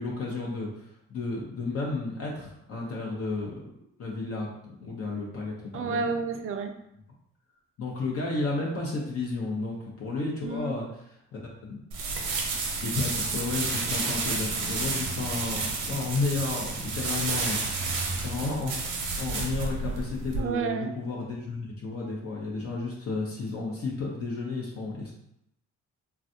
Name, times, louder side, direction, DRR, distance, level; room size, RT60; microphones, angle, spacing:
voice 1, 0.0-3.5 4.0-4.5 4.8-6.1 7.8-11.8 12.8-25.1, left 3 dB, 50° left, -3 dB, 0.7 m, -32 dB
voice 2, 5.7-6.7 10.4-10.8 20.4-20.9, right 4 dB, 45° right, 6 dB, 0.4 m, -30 dB
sound 1, 11.9-20.4, right 3 dB, 90° right, 0.7 m, -31 dB
3.3 x 2.4 x 2.6 m, 0.79 s
cardioid pair, 90°, 30 cm